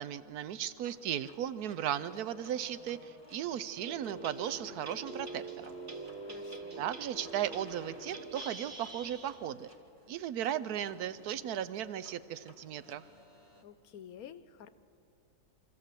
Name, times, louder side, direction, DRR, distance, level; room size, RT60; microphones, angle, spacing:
voice 1, 0.0-5.7 6.8-9.7 10.1-13.0, right 10 dB, 80° right, 14 dB, 1.2 m, -36 dB
sound 1, 0.8-13.6, right 1 dB, 15° right, 1.7 m, -58 dB
Singing / Musical instrument, 1.9-9.6, left 2 dB, 25° left, 1.0 m, -58 dB
sound 2, 3.8-9.5, right 3 dB, 50° right, 1.8 m, -45 dB
voice 2, 6.2-6.9 13.6-14.7, left 9 dB, 75° left, 13 dB, 1.1 m, -50 dB
24.0 x 14.5 x 7.6 m, 2.6 s
omnidirectional pair, 1.6 m